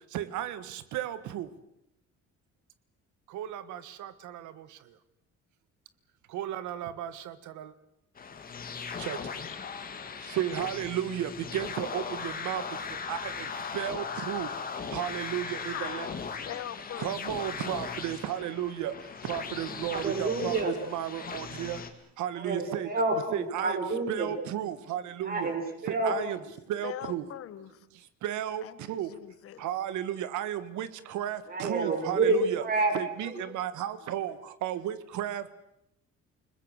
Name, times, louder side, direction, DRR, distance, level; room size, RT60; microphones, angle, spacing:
voice 1, 0.0-1.5 3.3-5.0 6.3-7.7 9.0-9.4 10.2-16.1 17.0-20.6 20.9-21.8 22.2-22.9 23.3-23.8 24.1-25.5 25.9-26.4 26.7-27.3 27.9-29.1 29.6-32.6 32.9-35.6, right 11 dB, 80° right, 13 dB, 1.7 m, -34 dB
sound 1, 8.1-21.9, left 6 dB, 30° left, 2.1 m, -38 dB
voice 2, 15.7-16.2 16.5-17.2 26.8-27.8 28.6-29.7 33.3-33.5, left 11 dB, 50° left, 15 dB, 1.4 m, -41 dB
voice 3, 19.9-20.8 22.3-24.3 25.2-26.4 31.5-32.9 33.3-33.4, right 2 dB, 30° right, 4 dB, 5.3 m, -29 dB
29.5 x 20.5 x 6.5 m, 0.79 s
cardioid pair, 160°, 29 cm